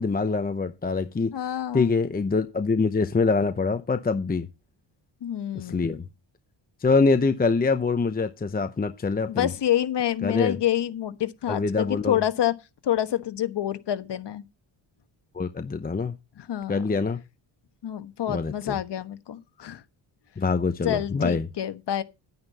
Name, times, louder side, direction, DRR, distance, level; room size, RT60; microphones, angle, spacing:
voice 1, 0.0-1.3 1.7-4.5 5.5-6.1 6.8-9.5 10.2-10.6 11.5-12.2 15.3-16.2 16.7-17.2 18.3-18.8 20.4-21.5, left 4 dB, 20° left, 0.8 m, -24 dB
voice 2, 1.3-1.9 5.2-6.0 9.3-12.5 12.8-14.4 16.4-16.8 17.8-19.8 20.8-22.0, left 11 dB, 60° left, 1.3 m, -27 dB
11.0 x 9.6 x 4.2 m
cardioid pair, 115°, 47 cm